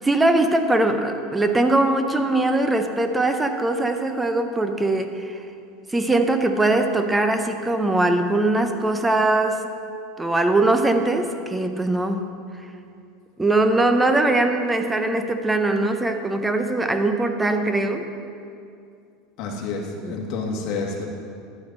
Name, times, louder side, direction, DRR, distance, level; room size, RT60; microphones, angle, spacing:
voice 1, 0.0-5.4 5.9-9.6 10.2-12.3 13.4-18.1, right 2 dB, 10° right, 6 dB, 0.6 m, -21 dB
voice 2, 19.4-21.0, left 4 dB, 50° left, 0 dB, 1.7 m, -29 dB
12.0 x 8.4 x 4.1 m, 2.4 s
supercardioid pair, 145°, 0 cm